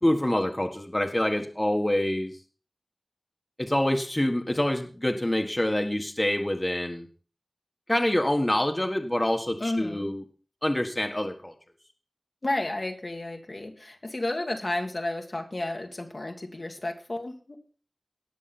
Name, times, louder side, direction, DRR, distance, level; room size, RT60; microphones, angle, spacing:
voice 1, 0.0-2.3 3.6-7.1 7.9-10.2 10.6-11.5, left 1 dB, 25° left, 4 dB, 1.6 m, -26 dB
voice 2, 9.6-10.1 12.4-17.6, left 2 dB, 60° left, 3 dB, 1.8 m, -32 dB
18.5 x 6.4 x 4.3 m, 0.38 s
wide cardioid pair, 40°, 0 cm